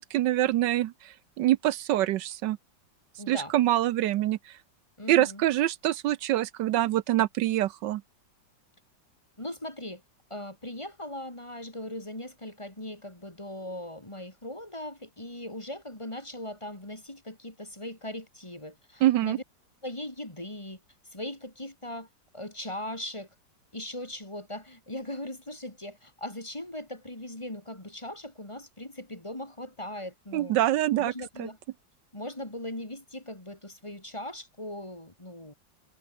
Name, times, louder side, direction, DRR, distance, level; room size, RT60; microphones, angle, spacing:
voice 1, 0.0-2.6 3.3-4.5 5.1-8.0 19.0-19.4 30.3-31.1 31.4-31.5, right 14 dB, 80° right, 1.3 m, -25 dB
voice 2, 3.2-3.5 5.0-5.4 9.4-10.0 10.3-19.4 19.8-20.8 21.1-22.1 22.3-23.3 23.7-30.6 31.0-31.6 32.1-35.5, left 1 dB, 15° left, 2.8 m, -39 dB
omnidirectional pair, 1.9 m